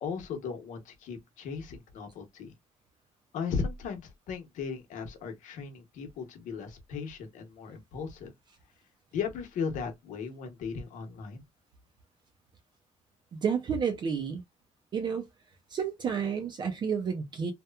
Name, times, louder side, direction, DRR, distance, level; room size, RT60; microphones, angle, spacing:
voice 1, 0.0-2.5 3.3-8.3 9.1-11.4, left 5 dB, 85° left, 0.9 m, -36 dB
voice 2, 13.3-14.4 14.9-15.3 15.7-17.5, right 6 dB, 35° right, 0.4 m, -30 dB
2.9 x 2.1 x 2.2 m
cardioid pair, 175°, 13 cm